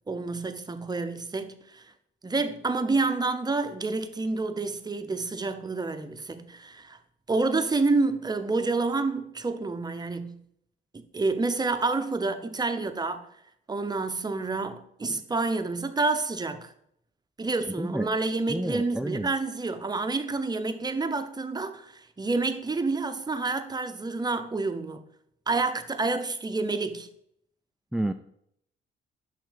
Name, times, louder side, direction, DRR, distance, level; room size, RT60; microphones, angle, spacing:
voice 1, 0.1-1.9 2.2-7.0 7.3-10.4 10.9-13.3 13.7-16.7 17.4-25.0 25.5-27.1, right 3 dB, 20° right, 0.7 m, -28 dB
voice 2, 18.5-19.3 27.9-28.1, right 1 dB, ahead, 0.3 m, -29 dB
6.3 x 5.7 x 5.1 m
cardioid pair, 90°, 20 cm